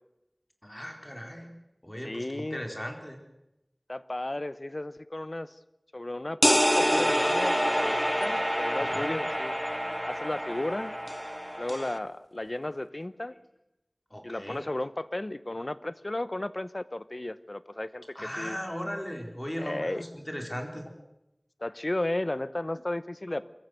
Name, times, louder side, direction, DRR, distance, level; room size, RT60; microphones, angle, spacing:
voice 1, 0.6-1.5 1.8-3.2 8.8-9.1 14.1-14.6 18.1-20.8, equal, 25° left, 3 dB, 4.1 m, -37 dB
voice 2, 2.0-2.6 3.9-5.5 5.9-9.6 10.1-10.9 11.6-13.3 14.2-18.6 19.6-20.0 21.6-23.4, left 1 dB, 50° left, 15 dB, 0.8 m, -34 dB
sound 1, 6.4-12.0, equal, ahead, 0.7 m, -27 dB
23.0 x 14.5 x 8.0 m, 0.89 s
wide cardioid pair, 40°, 0 cm